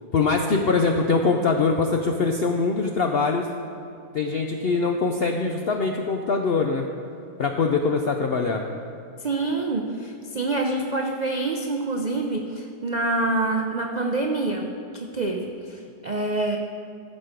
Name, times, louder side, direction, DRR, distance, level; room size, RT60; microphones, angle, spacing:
voice 1, 0.1-3.5 4.1-6.9 7.4-8.6, left 4 dB, 75° left, 3 dB, 0.5 m, -23 dB
voice 2, 9.2-16.6, right 2 dB, 85° right, 2 dB, 0.3 m, -26 dB
14.0 x 6.3 x 5.1 m, 2.8 s
omnidirectional pair, 1.7 m